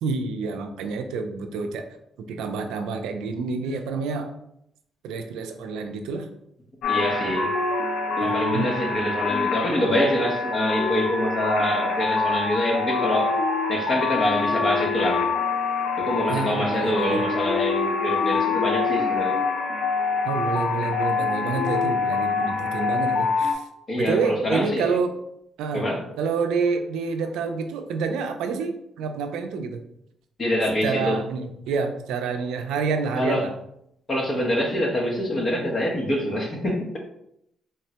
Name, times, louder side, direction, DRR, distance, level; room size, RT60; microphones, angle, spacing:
voice 1, 0.0-1.9 2.2-4.3 5.0-6.3 8.2-8.7 16.3-17.3 20.2-23.7 23.9-25.2 25.6-25.9 26.2-29.8 30.8-33.5, right 4 dB, 90° right, 6 dB, 0.3 m, -28 dB
sound 1, 6.8-23.5, left 4 dB, 80° left, 0.4 m, -25 dB
voice 2, 6.9-7.5 8.2-13.3 13.7-15.2 16.0-19.4 23.9-24.9 25.7-26.0 30.4-31.2 33.2-33.4 34.1-37.0, left 1 dB, 40° left, 0 dB, 0.9 m, -25 dB
3.5 x 2.1 x 2.8 m, 0.77 s
cardioid pair, 90°, 0 cm